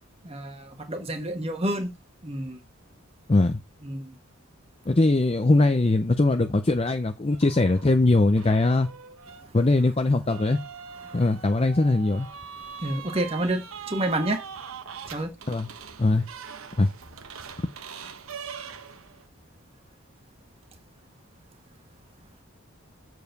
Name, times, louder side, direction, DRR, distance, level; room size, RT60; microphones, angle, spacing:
voice 1, 0.2-1.9 2.2-2.6 3.8-4.2 9.4-9.5 11.0-11.1 12.8-14.4 15.1-15.3, right 1 dB, 30° right, 1.5 m, -29 dB
voice 2, 3.3-3.6 4.9-8.9 9.5-10.6 11.1-12.3 15.5-15.7 16.0-16.2 16.8-16.9, left 2 dB, 25° left, 0.5 m, -21 dB
sound 1, 7.3-7.9 8.4-19.3, right 7 dB, 75° right, 1.1 m, -42 dB
7.2 x 4.7 x 6.5 m
head